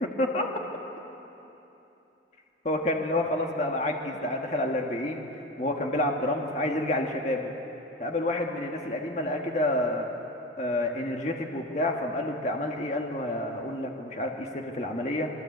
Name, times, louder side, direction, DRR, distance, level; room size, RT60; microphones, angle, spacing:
voice 1, 0.0-0.5 2.7-5.2 5.6-7.5 8.0-10.1 10.6-15.3, left 1 dB, 40° left, 2 dB, 1.8 m, -29 dB
28.0 x 21.5 x 8.1 m, 3.0 s
head